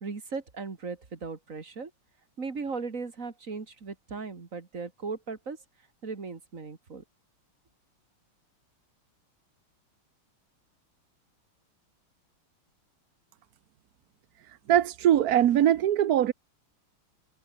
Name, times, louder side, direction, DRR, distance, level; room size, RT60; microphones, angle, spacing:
voice 1, 0.0-1.9 2.4-5.6 6.0-7.0, right 4 dB, 35° right, 2.8 m, -37 dB
voice 2, 14.7-16.3, right 11 dB, 60° right, 1.0 m, -21 dB
omnidirectional pair, 2.3 m